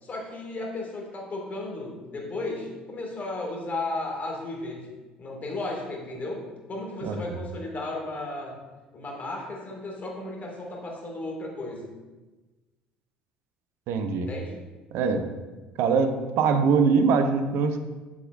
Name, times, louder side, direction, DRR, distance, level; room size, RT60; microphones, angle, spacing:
voice 1, 0.0-8.6 8.9-11.9 14.1-14.5, left 2 dB, 35° left, -1 dB, 2.1 m, -34 dB
voice 2, 13.9-14.3 14.9-15.2 15.8-17.8, right 5 dB, 55° right, 8 dB, 0.7 m, -22 dB
7.2 x 6.8 x 2.5 m, 1.2 s
figure-of-eight pair, 55°, 5 cm